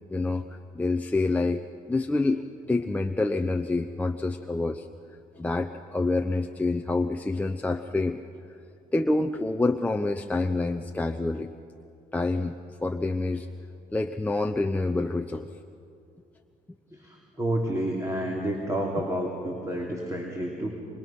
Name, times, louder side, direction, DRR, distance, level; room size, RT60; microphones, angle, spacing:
voice 1, 0.1-0.5 0.7-1.6 1.9-2.4 2.7-4.9 5.4-8.2 8.9-11.5 12.1-12.6 12.8-13.5 13.9-15.5, left 2 dB, 10° left, 4 dB, 0.7 m, -27 dB
voice 2, 16.9-20.7, right 1 dB, 20° right, -1 dB, 3.2 m, -30 dB
29.0 x 24.5 x 6.0 m, 2.5 s
cardioid pair, 110°, 17 cm